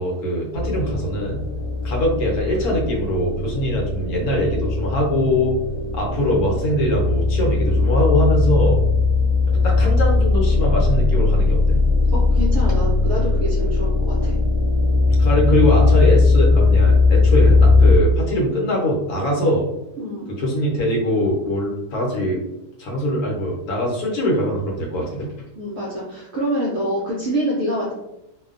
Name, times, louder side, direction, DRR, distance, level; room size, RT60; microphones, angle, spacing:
voice 1, 0.0-1.4 1.8-5.6 5.9-8.8 9.6-11.8 15.2-19.7 20.4-22.4 22.8-25.3, equal, 75° left, -1 dB, 1.2 m, -22 dB
sound 1, 0.5-18.0, left 3 dB, 50° left, 0.9 m, -18 dB
voice 2, 12.1-14.4 20.0-20.3 25.6-27.9, right 1 dB, 70° right, -5 dB, 0.6 m, -26 dB
2.6 x 2.2 x 2.4 m, 0.89 s
omnidirectional pair, 1.6 m